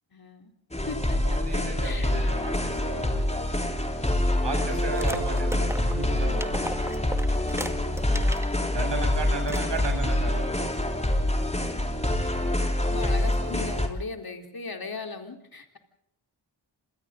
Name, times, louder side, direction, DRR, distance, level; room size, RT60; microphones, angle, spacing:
voice 1, 0.1-0.5 0.9-1.4 1.8-2.1 7.5-8.0 9.3-9.4 11.1-11.7 12.1-15.8, left 4 dB, 50° left, 5 dB, 4.1 m, -39 dB
sound 1, 0.7-13.9, left 1 dB, 15° left, 3.8 m, -26 dB
voice 2, 1.2-3.3 4.4-6.6 8.7-10.5, right 3 dB, 65° right, 4 dB, 7.9 m, -34 dB
sound 2, 4.9-8.5 9.0-9.1 9.4-10.2, right 1 dB, 5° right, 2.2 m, -37 dB
28.5 x 27.5 x 3.9 m, 0.75 s
wide cardioid pair, 80°, 46 cm